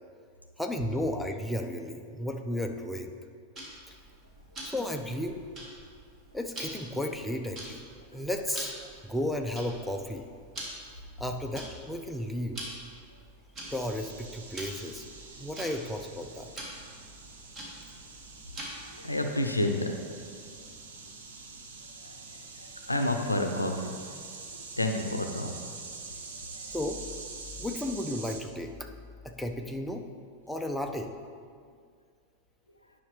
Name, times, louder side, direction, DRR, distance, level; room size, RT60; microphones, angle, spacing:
voice 1, 0.6-3.1 3.9-4.0 4.6-5.4 6.3-7.8 8.1-10.3 11.2-12.6 13.7-15.0 15.4-16.5 26.7-27.0 27.6-28.9 29.2-30.0 30.5-31.1, left 1 dB, 5° left, 3 dB, 0.5 m, -33 dB
Tick-tock, 3.6-19.0, right 1 dB, 30° right, 1.8 m, -45 dB
sound 1, 13.6-28.4, right 4 dB, 60° right, 0.9 m, -45 dB
voice 2, 18.8-20.0 22.0-24.1 24.8-25.7 26.5-26.6, left 1 dB, 85° left, 5 dB, 0.6 m, -30 dB
9.7 x 5.8 x 3.2 m, 2.1 s
figure-of-eight pair, 90°, 0 cm